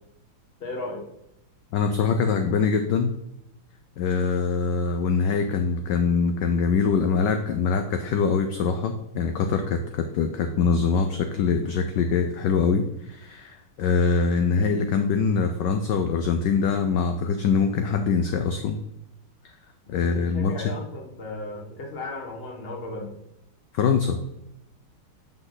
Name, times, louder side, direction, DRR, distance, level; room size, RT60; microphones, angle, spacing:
voice 1, 0.6-1.1 19.9-23.1, left 2 dB, 30° left, 1 dB, 1.5 m, -35 dB
voice 2, 1.7-3.1 4.0-18.8 19.9-20.7 23.7-24.2, left 5 dB, 70° left, 6 dB, 1.2 m, -23 dB
9.1 x 6.0 x 3.9 m, 0.85 s
omnidirectional pair, 2.3 m